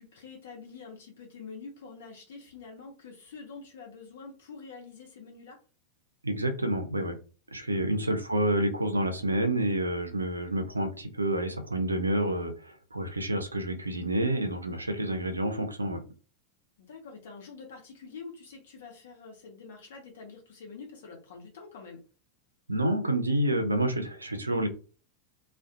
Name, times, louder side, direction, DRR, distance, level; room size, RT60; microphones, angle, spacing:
voice 1, 0.0-5.6 16.8-22.0, left 4 dB, 60° left, 1 dB, 0.7 m, -46 dB
voice 2, 6.2-7.1 7.5-16.0 22.7-24.7, right 1 dB, 80° right, 7 dB, 0.5 m, -28 dB
2.4 x 2.2 x 2.5 m, 0.36 s
figure-of-eight pair, 90°, 0 cm